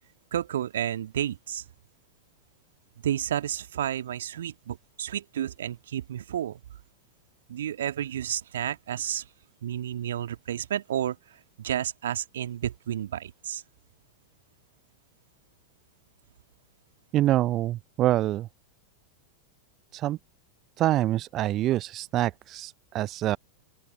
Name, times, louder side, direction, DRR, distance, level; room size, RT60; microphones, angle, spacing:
voice 1, 0.3-1.7 3.0-6.6 7.5-9.3 9.6-13.6, right 10 dB, 60° right, 2.1 m, -31 dB
voice 2, 17.1-18.5 19.9-20.2 20.8-23.4, right 14 dB, 35° right, 0.4 m, -26 dB
open air
figure-of-eight pair, 90°, 0 cm